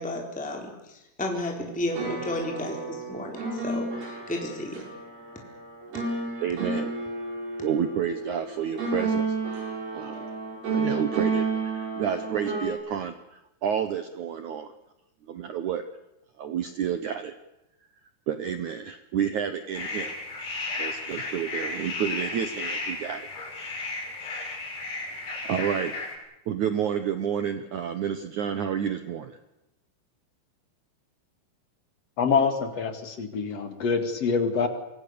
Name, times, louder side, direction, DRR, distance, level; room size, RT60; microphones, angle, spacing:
voice 1, 0.0-4.8, left 1 dB, ahead, 1 dB, 3.8 m, -33 dB
sound 1, 1.7-12.7, right 3 dB, 65° right, 8.3 m, -31 dB
voice 2, 6.4-6.9 7.6-9.4 9.9-10.1 10.7-11.4 11.7-14.7 15.3-15.8 16.4-17.3 18.3-20.1 20.8-23.3 25.5-25.9 26.5-29.3, right 8 dB, 80° right, 10 dB, 1.7 m, -30 dB
sound 2, 19.7-26.1, left 3 dB, 65° left, 8.7 m, -34 dB
voice 3, 32.2-34.7, left 5 dB, 45° left, 8 dB, 2.5 m, -25 dB
26.5 x 24.0 x 6.9 m, 0.91 s
omnidirectional pair, 5.1 m